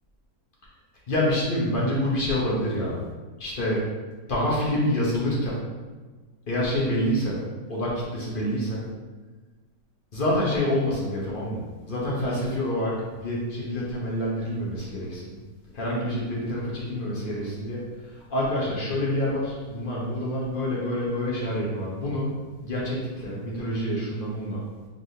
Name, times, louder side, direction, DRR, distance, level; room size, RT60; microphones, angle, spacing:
voice 1, 1.1-3.0 3.4-3.8 4.3-5.6 6.5-7.4 7.7-8.8 10.1-11.6 11.9-15.3 15.7-17.8 18.3-22.3 22.6-24.6, left 1 dB, 40° left, -5 dB, 0.9 m, -27 dB
4.0 x 3.4 x 2.8 m, 1.3 s
omnidirectional pair, 1.8 m